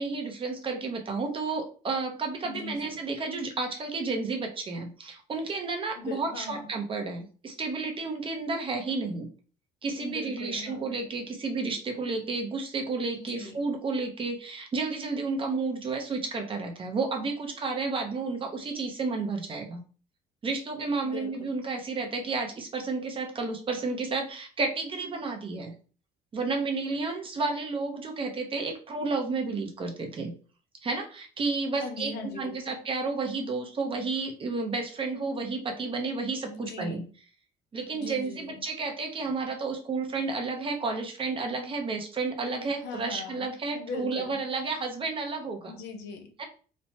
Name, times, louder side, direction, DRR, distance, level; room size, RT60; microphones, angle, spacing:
voice 1, 0.0-9.3 9.8-19.8 20.4-25.7 26.3-30.3 30.8-37.0 37.7-45.7 46.4-46.5, right 3 dB, 30° right, 0.6 m, -31 dB
voice 2, 2.4-3.0 6.0-6.7 10.0-11.0 13.1-13.6 21.0-21.6 31.8-32.8 36.5-37.1 37.9-38.7 42.6-44.4 45.7-46.4, left 4 dB, 90° left, 0.6 m, -41 dB
3.1 x 2.1 x 2.7 m
cardioid pair, 110°, 17 cm